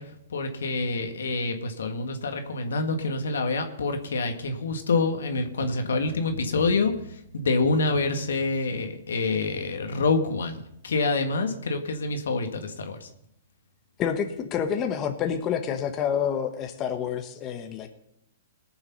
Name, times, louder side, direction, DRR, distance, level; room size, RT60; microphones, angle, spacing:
voice 1, 0.0-13.1, left 3 dB, 85° left, 6 dB, 1.8 m, -27 dB
voice 2, 14.0-17.9, left 8 dB, 30° left, 5 dB, 1.3 m, -28 dB
19.5 x 7.0 x 5.6 m, 0.76 s
hypercardioid pair, 135°, 0 cm